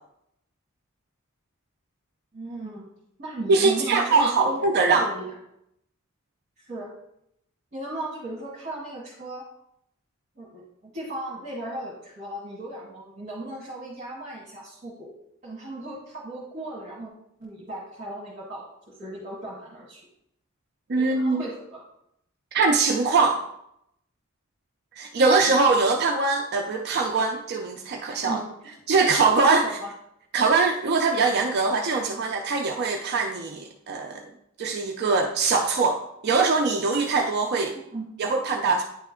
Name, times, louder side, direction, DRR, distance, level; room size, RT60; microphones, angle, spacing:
voice 1, 2.3-2.9 3.2-5.3 6.6-6.9 7.7-9.5 10.3-15.1 15.4-17.1 17.4-20.0 21.0-21.8 25.5-25.6 28.2-28.5 29.6-29.9 37.7-38.0, right 1 dB, 35° right, -6 dB, 1.5 m, -36 dB
voice 2, 3.5-5.1 20.9-21.4 22.5-23.4 24.9-28.4 28.9-29.7 30.3-34.2 34.6-37.8 38.2-38.8, right 4 dB, 50° right, 3 dB, 0.5 m, -22 dB
9.6 x 3.2 x 3.6 m, 0.77 s
head